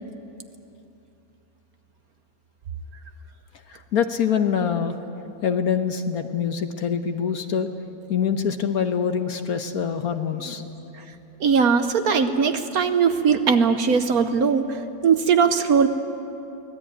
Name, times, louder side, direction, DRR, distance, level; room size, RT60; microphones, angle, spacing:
voice 1, 3.7-5.0 5.4-7.7 8.1-10.7, left 7 dB, 55° left, 7 dB, 1.3 m, -25 dB
voice 2, 11.4-14.7 15.0-15.9, right 6 dB, 60° right, 9 dB, 1.2 m, -19 dB
24.0 x 18.0 x 9.2 m, 2.8 s
omnidirectional pair, 2.0 m